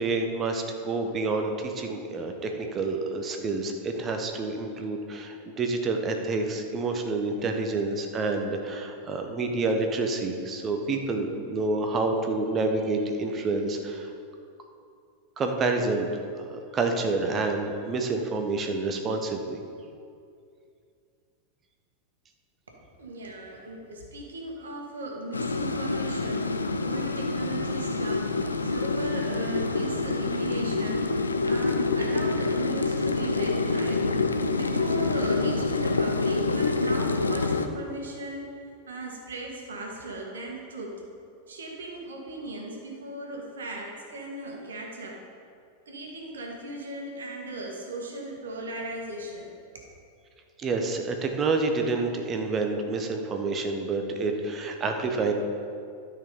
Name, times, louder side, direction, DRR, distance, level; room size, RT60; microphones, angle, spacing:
voice 1, 0.0-14.1 15.4-19.6 50.6-55.3, right 3 dB, 25° right, 4 dB, 1.2 m, -28 dB
voice 2, 23.0-34.0 34.5-38.5 38.9-40.9 41.5-45.2 45.9-49.8, right 2 dB, 70° right, 0 dB, 1.9 m, -37 dB
sound 1, 25.3-37.7, left 3 dB, 75° left, 0.5 m, -27 dB
12.5 x 6.0 x 5.2 m, 2.4 s
figure-of-eight pair, 90°, 0 cm